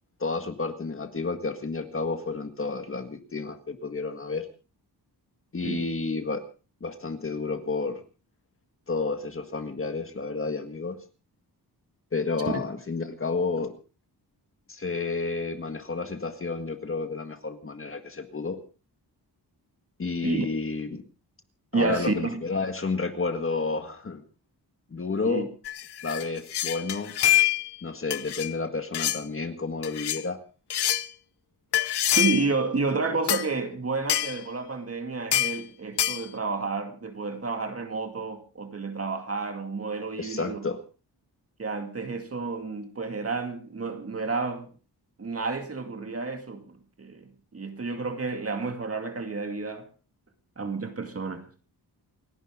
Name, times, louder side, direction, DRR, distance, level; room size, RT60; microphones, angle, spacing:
voice 1, 0.2-4.5 5.5-6.4 6.8-8.0 8.9-11.0 12.1-13.7 14.7-18.6 20.0-21.0 21.7-24.2 24.9-25.5 26.0-27.1 27.8-30.4 40.2-40.8, left 4 dB, 35° left, 1.8 m, -31 dB
voice 2, 21.7-22.4 25.3-25.5 32.2-40.6 41.6-44.7 45.2-49.9 50.6-51.5, right 4 dB, 35° right, 2.2 m, -30 dB
sound 1, 25.6-27.8 28.1-28.5 28.9-29.2 29.8-30.2 30.7-31.1 31.7-32.5 33.3-33.5 34.1-34.4 35.3-35.6 36.0-36.2, left 12 dB, 85° left, 1.0 m, -25 dB
29.0 x 11.0 x 3.7 m
wide cardioid pair, 140°, 39 cm